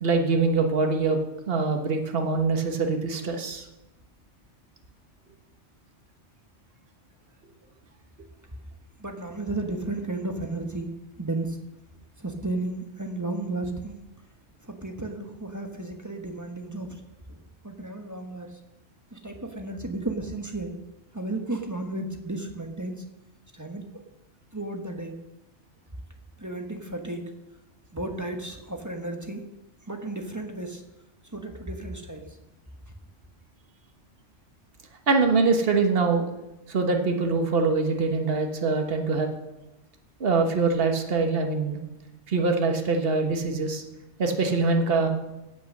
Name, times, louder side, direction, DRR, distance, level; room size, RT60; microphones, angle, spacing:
voice 1, 0.0-1.2 1.5-3.6 35.1-36.3 36.7-39.3 40.2-41.8 42.3-43.8 44.2-45.1, right 4 dB, 50° right, 4 dB, 1.5 m, -24 dB
voice 2, 9.0-10.9 11.2-11.6 12.2-13.9 14.6-17.0 17.3-17.4 17.6-18.6 19.1-20.8 21.1-23.0 23.5-24.0 24.5-25.2 26.4-27.3 27.9-29.4 29.9-30.8 31.3-32.4 32.9-33.0, right 2 dB, 15° right, 4 dB, 1.3 m, -33 dB
17.0 x 6.2 x 6.5 m, 0.97 s
omnidirectional pair, 1.3 m